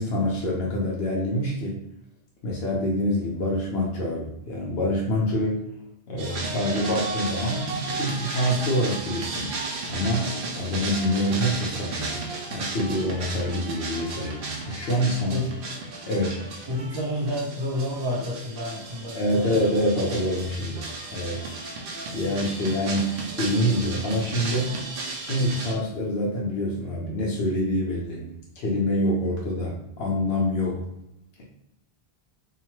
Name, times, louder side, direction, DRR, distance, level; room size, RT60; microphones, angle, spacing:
voice 1, 0.0-1.8 2.4-5.7 6.1-9.5 9.9-15.4 16.0-16.4 19.1-21.5 22.1-24.8 25.2-28.3 28.6-30.8 31.4-31.5, equal, 70° left, -3 dB, 0.8 m, -26 dB
sound 1, 6.2-25.8, right 3 dB, 65° right, 0.7 m, -34 dB
voice 2, 16.7-19.8, left 1 dB, 45° right, -5 dB, 0.3 m, -30 dB
2.7 x 2.1 x 3.0 m, 0.81 s
omnidirectional pair, 1.1 m